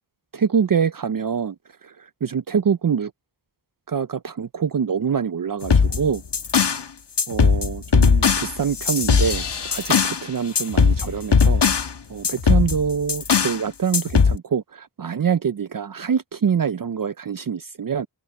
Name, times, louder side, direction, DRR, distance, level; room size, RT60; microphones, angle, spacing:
voice 1, 0.3-1.6 1.8-3.1 3.9-6.2 7.3-9.4 9.7-11.6 12.1-18.1, right 7 dB, 50° right, 0.6 m, -25 dB
sound 1, 5.6-6.8 7.2-10.2 10.6-11.9 12.2-13.6 13.9-14.4, left 5 dB, 70° left, 1.4 m, -19 dB
open air
wide cardioid pair, 70°, 43 cm